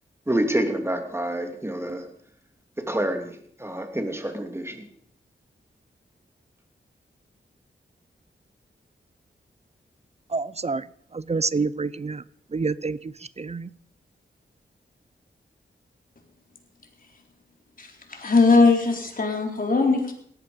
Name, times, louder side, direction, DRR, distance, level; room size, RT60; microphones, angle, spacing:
voice 1, 0.3-2.1 2.8-4.8, right 1 dB, 15° right, 2.8 m, -27 dB
voice 2, 10.3-10.9 11.1-12.2 12.5-13.7, right 4 dB, 35° right, 0.6 m, -28 dB
voice 3, 17.8-20.1, left 3 dB, 45° left, 3.8 m, -20 dB
18.0 x 14.0 x 5.2 m
wide cardioid pair, 90°, 20 cm